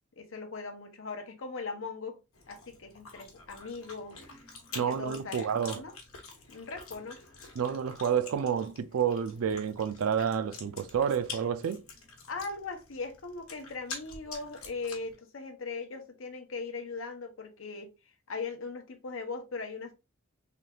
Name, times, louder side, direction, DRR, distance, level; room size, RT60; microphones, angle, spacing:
voice 1, 0.1-2.2 2.5-4.5 4.7-5.9 6.5-7.2 12.3-17.9 18.3-19.9, left 4 dB, 65° left, 0.7 m, -39 dB
Chewing mastication, 2.3-15.2, left 4 dB, 85° left, 1.0 m, -47 dB
voice 2, 4.8-5.8 7.6-11.8, right 7 dB, 80° right, 0.4 m, -29 dB
3.4 x 2.3 x 2.7 m
head